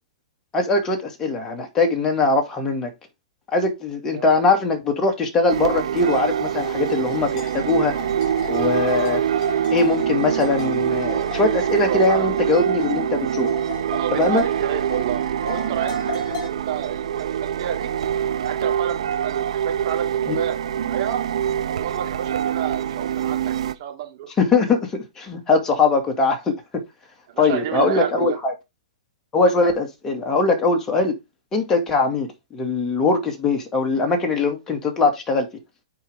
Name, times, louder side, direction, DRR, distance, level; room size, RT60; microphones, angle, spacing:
voice 1, 0.5-2.9 3.5-7.9 8.5-9.2 9.7-13.5 14.2-14.4 20.3-20.4 24.4-26.5 27.4-28.5 29.3-31.1 31.5-35.5, left 3 dB, 20° left, 2.3 m, -21 dB
sound 1, 5.5-23.7, right 9 dB, 75° right, 0.8 m, -25 dB
sound 2, 5.9-16.5, left 7 dB, 40° left, 4.8 m, -37 dB
voice 2, 11.7-12.3 13.9-17.9 18.4-21.2 21.7-24.3 27.3-28.4, right 9 dB, 55° right, 2.9 m, -30 dB
9.2 x 4.8 x 3.7 m
hypercardioid pair, 130°, 3 cm